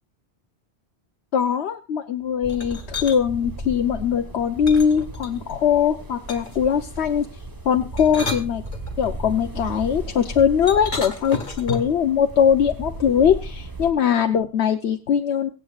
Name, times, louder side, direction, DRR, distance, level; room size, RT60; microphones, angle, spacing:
voice 1, 1.3-8.6 9.0-15.5, left 8 dB, 75° left, 6 dB, 1.1 m, -21 dB
sound 1, 2.4-13.9, right 1 dB, 20° right, 1.4 m, -36 dB
sound 2, 2.5-3.2 4.7-5.6 6.3-6.7 7.8-9.1 10.7-12.0, left 3 dB, 50° left, 2.1 m, -32 dB
24.0 x 8.4 x 2.4 m, 0.33 s
omnidirectional pair, 1.1 m